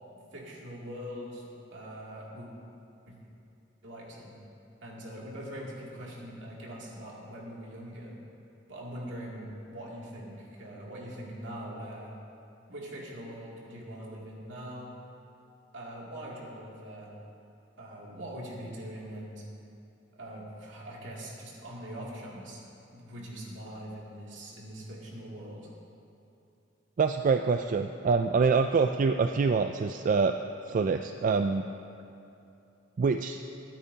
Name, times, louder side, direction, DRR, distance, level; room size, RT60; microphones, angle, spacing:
voice 1, 0.1-2.5 3.1-3.2 3.8-4.3 4.8-8.2 8.7-12.1 12.7-14.9 15.7-17.1 17.8-19.4 20.1-22.6 22.9-25.7, equal, 75° right, -4 dB, 2.6 m, -42 dB
voice 2, 27.0-30.3 30.7-31.7 33.0-33.4, right 4 dB, 45° right, 6 dB, 0.3 m, -25 dB
24.5 x 8.8 x 2.8 m, 2.7 s
head